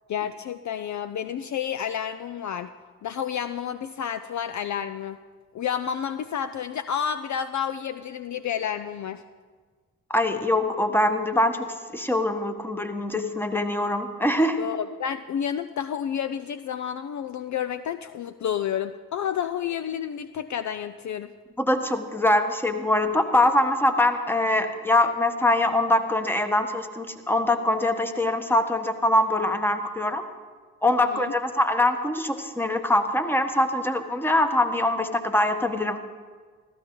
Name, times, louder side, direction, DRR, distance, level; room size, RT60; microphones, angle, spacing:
voice 1, 0.1-2.7 3.0-5.2 5.5-9.2 14.6-21.3 31.1-31.3, left 8 dB, 50° left, 10 dB, 0.5 m, -30 dB
voice 2, 10.1-14.6 21.6-30.2 30.8-36.0, left 1 dB, 5° left, 7 dB, 1.2 m, -23 dB
15.0 x 13.5 x 3.8 m, 1.5 s
supercardioid pair, 55°, 37 cm